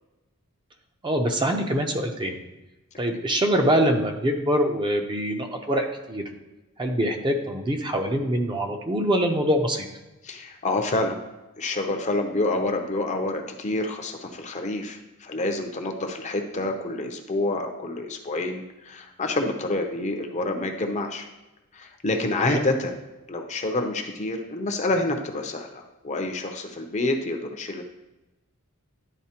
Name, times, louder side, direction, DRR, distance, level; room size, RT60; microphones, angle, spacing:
voice 1, 1.0-2.4 3.0-6.2 6.8-9.9 22.4-22.6, equal, 20° right, 3 dB, 0.6 m, -24 dB
voice 2, 10.2-11.2 11.6-21.3 21.7-22.9 23.3-27.8, left 2 dB, 30° left, 4 dB, 0.6 m, -28 dB
11.0 x 3.9 x 2.9 m, 1.0 s
head